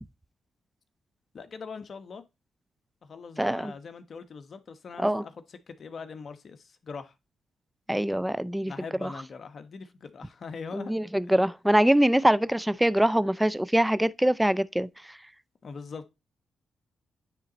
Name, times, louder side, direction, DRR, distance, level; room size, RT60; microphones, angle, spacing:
voice 1, 1.3-2.2 3.0-7.1 8.6-10.9 11.3-11.4 15.6-16.1, left 5 dB, 55° left, 1.1 m, -42 dB
voice 2, 3.4-3.7 5.0-5.2 7.9-8.7 9.0-9.1 10.7-15.2, right 1 dB, 5° right, 0.5 m, -24 dB
9.5 x 3.8 x 4.2 m
supercardioid pair, 55°, 0 cm